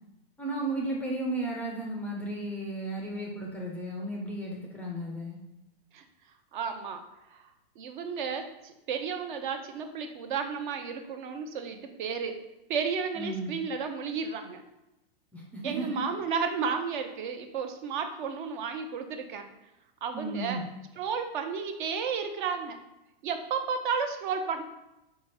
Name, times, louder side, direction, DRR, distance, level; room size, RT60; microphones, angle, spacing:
voice 1, 0.4-5.4 13.1-13.5 15.3-16.0 20.1-20.6, right 2 dB, 5° left, -1 dB, 0.5 m, -34 dB
voice 2, 6.5-7.0 7.3-7.4 7.8-12.3 12.7-14.6 15.6-19.5 20.0-20.6 21.0-22.8 23.2-24.6, right 6 dB, 50° right, 6 dB, 0.8 m, -32 dB
5.0 x 4.8 x 4.1 m, 0.91 s
hypercardioid pair, 150°, 31 cm